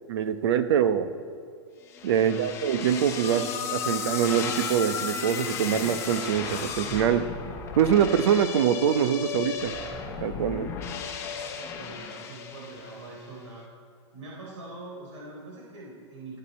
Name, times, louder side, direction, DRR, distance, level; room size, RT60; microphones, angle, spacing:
voice 1, 0.1-1.1 2.0-7.3 7.8-9.7 10.2-10.7, right 9 dB, 60° right, 11 dB, 0.9 m, -24 dB
sound 1, 1.9-13.2, left 6 dB, 15° left, 1.1 m, -34 dB
voice 2, 2.2-2.7 10.7-11.3 11.7-13.6 14.1-16.4, right 2 dB, 80° right, -4 dB, 3.8 m, -44 dB
26.0 x 9.1 x 4.3 m, 2.1 s
supercardioid pair, 165°, 15 cm